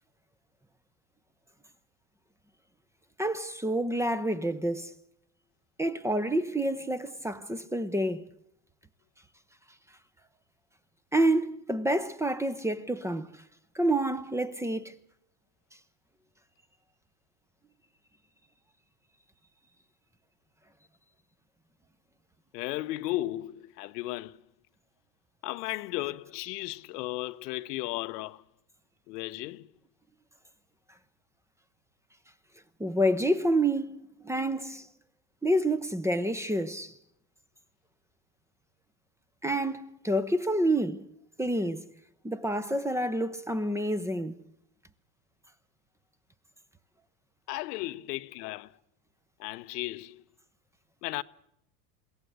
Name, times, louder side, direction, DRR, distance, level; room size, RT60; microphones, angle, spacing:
voice 1, 3.2-4.9 5.8-8.2 11.1-13.3 13.7-14.9 32.8-34.0 34.2-34.9 35.4-36.9 39.4-41.0 41.4-41.9 42.2-44.4, right 1 dB, 5° right, 0.7 m, -28 dB
voice 2, 22.5-24.4 25.4-28.4 29.1-29.7 47.5-48.8 49.4-50.2 51.0-51.2, left 18 dB, 80° left, 0.8 m, -35 dB
22.0 x 17.0 x 8.0 m
supercardioid pair, 115°, 47 cm